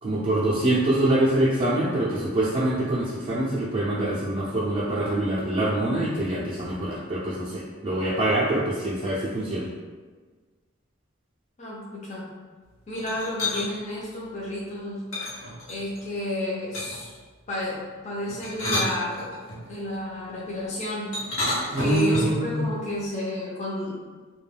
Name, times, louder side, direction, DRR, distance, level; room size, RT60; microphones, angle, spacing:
voice 1, 0.0-9.7 21.7-22.6, right 1 dB, 30° right, -9 dB, 0.4 m, -25 dB
voice 2, 11.6-12.3 12.9-15.0 15.7-17.2 17.5-19.4 19.6-21.1 21.8-24.0, left 1 dB, 35° left, -6 dB, 0.5 m, -31 dB
sound 1, 12.9-13.7 15.1-16.0 16.7-17.1 18.3-19.6 21.1-22.5, left 1 dB, 85° left, 0.8 m, -29 dB
2.2 x 2.2 x 3.3 m, 1.4 s
head